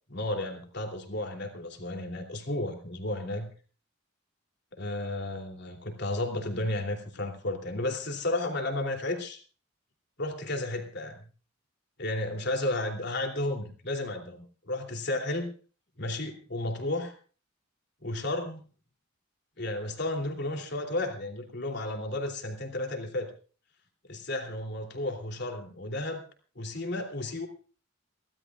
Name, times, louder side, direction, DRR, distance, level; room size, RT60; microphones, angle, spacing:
voice 1, 0.1-3.5 4.7-9.4 10.2-11.2 12.0-15.5 16.0-17.1 18.0-18.6 19.6-23.3 24.1-26.2 26.5-27.5, left 1 dB, 55° left, 4 dB, 3.2 m, -33 dB
28.5 x 13.0 x 2.5 m, 0.38 s
head